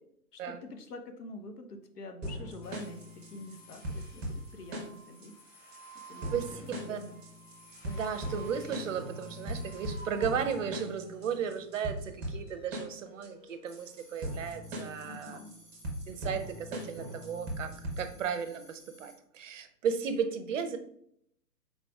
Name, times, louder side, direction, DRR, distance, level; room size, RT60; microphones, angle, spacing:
voice 1, 0.3-7.2 15.0-15.6, left 2 dB, 65° left, 6 dB, 0.9 m, -47 dB
sound 1, 2.2-18.2, equal, 15° right, 0.7 m, -40 dB
sound 2, 2.6-14.3, right 1 dB, 25° left, 1.4 m, -53 dB
voice 2, 6.3-6.6 6.9-7.0 7.8-15.4 16.1-20.8, right 7 dB, 50° right, 9 dB, 0.6 m, -35 dB
sound 3, 13.7-19.2, equal, 10° left, 1.4 m, -58 dB
5.3 x 4.0 x 2.3 m, 0.70 s
hypercardioid pair, 135°, 49 cm